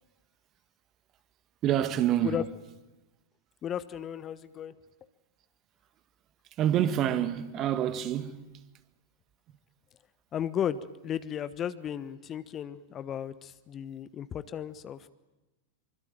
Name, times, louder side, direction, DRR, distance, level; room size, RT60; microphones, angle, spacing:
voice 1, 1.6-2.4 6.6-8.4, right 11 dB, 35° right, 1.9 m, -27 dB
voice 2, 3.6-4.8 10.3-15.1, left 9 dB, 30° left, 1.1 m, -35 dB
25.5 x 24.5 x 9.2 m
figure-of-eight pair, 90°, 0 cm